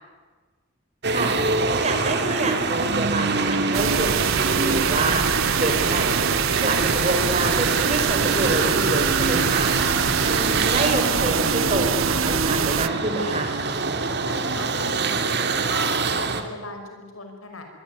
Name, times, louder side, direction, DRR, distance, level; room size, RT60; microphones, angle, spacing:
sound 1, 1.0-16.4, right 4 dB, 55° right, 2.3 m, -24 dB
voice 1, 1.1-1.4 1.8-5.2 5.5-6.1 6.6-9.7 10.2-13.5, right 2 dB, 35° right, 4 dB, 5.3 m, -27 dB
sound 2, 3.7-12.9, right 8 dB, 80° right, 0.8 m, -25 dB
voice 2, 14.2-17.6, left 2 dB, 85° left, 5 dB, 5.6 m, -38 dB
25.0 x 22.5 x 9.6 m, 1.4 s
head